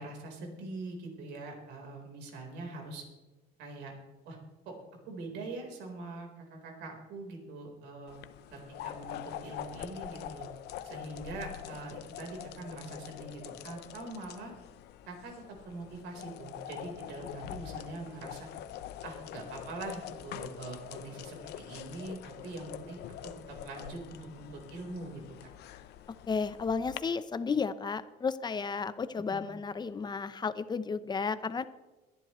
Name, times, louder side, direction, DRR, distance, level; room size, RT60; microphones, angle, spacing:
voice 1, 0.0-3.0 3.6-3.9 4.3-4.4 4.7-4.8 5.1-8.2 8.5-10.5 10.8-14.5 15.1-15.3 15.6-18.5 19.0-25.2 29.2-29.5, right 2 dB, 90° right, 2 dB, 4.2 m, -43 dB
sound 1, 8.1-27.0, left 11 dB, 80° left, 0.8 m, -45 dB
voice 2, 26.3-31.7, left 5 dB, 25° left, 13 dB, 0.8 m, -33 dB
22.0 x 10.5 x 3.2 m, 1.2 s
cardioid pair, 110°, 17 cm